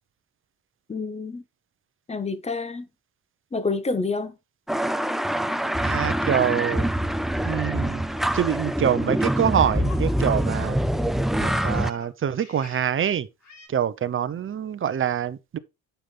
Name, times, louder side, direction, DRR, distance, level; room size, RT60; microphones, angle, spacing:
voice 1, 0.9-1.4 2.1-2.9 3.5-4.3, left 3 dB, 15° left, 1.3 m, -28 dB
sound 1, 4.7-11.9, equal, ahead, 0.4 m, -25 dB
voice 2, 5.8-6.9 7.4-8.0 8.3-10.8 11.3-13.3 13.7-15.6, right 9 dB, 35° right, 0.9 m, -25 dB
Laughter, 6.9-10.7 11.1-13.0 13.4-13.7, left 5 dB, 50° left, 4.2 m, -48 dB
9.1 x 7.1 x 3.4 m
cardioid pair, 130°, 37 cm